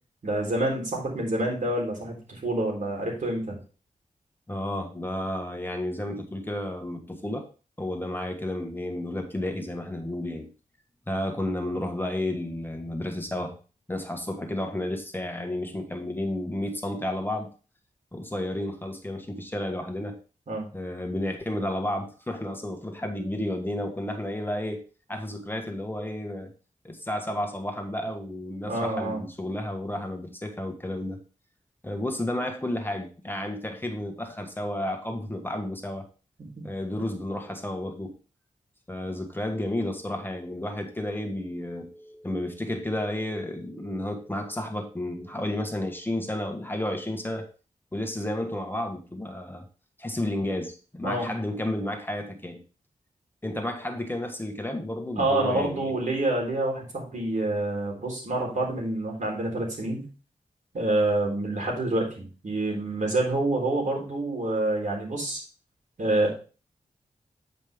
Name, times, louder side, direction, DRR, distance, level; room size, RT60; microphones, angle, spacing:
voice 1, 0.2-3.6 20.5-20.7 28.7-29.2 36.4-36.7 51.0-51.3 55.2-60.0 60.7-65.4 66.0-66.3, right 2 dB, 65° right, -1 dB, 3.8 m, -27 dB
voice 2, 4.5-7.5 7.8-10.5 11.1-13.6 13.9-17.5 18.1-20.2 20.7-24.8 25.1-26.5 26.8-31.2 31.8-36.0 36.6-38.2 38.9-47.5 47.9-49.7 50.0-52.6 53.4-55.9, left 1 dB, 15° left, 4 dB, 1.4 m, -32 dB
9.3 x 5.4 x 3.5 m, 0.36 s
cardioid pair, 65°, 14 cm